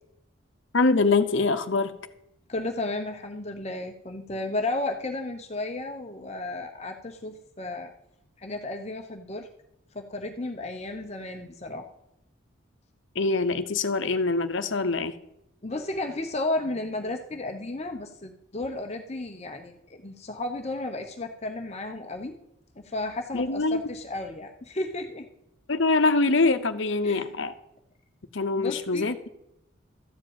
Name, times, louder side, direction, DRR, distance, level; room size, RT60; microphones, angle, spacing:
voice 1, 0.7-2.0 13.2-15.1 23.3-23.8 25.7-27.5 28.3-29.3, left 3 dB, 65° left, 0.8 m, -24 dB
voice 2, 2.5-7.9 8.4-9.5 9.9-11.9 15.6-22.3 22.8-25.3 27.0-27.3 28.5-29.1, left 2 dB, 30° left, 0.8 m, -33 dB
13.5 x 5.2 x 8.8 m
head